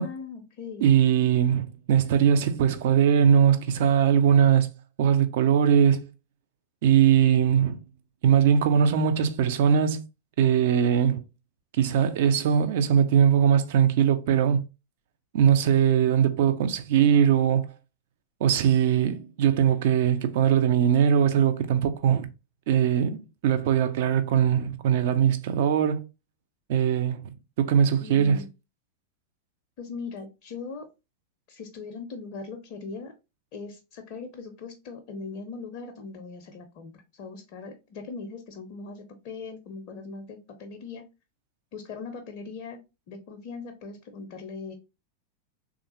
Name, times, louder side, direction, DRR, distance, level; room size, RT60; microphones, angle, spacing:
voice 1, 0.0-0.9 28.0-28.5 29.8-30.9 31.5-33.1 33.5-41.1 41.7-42.8 43.1-44.7, left 4 dB, 45° left, 0.5 m, -40 dB
voice 2, 0.8-4.7 5.0-6.0 6.8-7.8 8.2-10.0 10.4-11.2 11.8-14.6 15.3-17.7 18.4-22.3 22.7-26.0 26.7-27.2 27.6-28.4, right 8 dB, 50° right, 0.4 m, -21 dB
3.4 x 2.4 x 2.8 m
figure-of-eight pair, 90°, 0 cm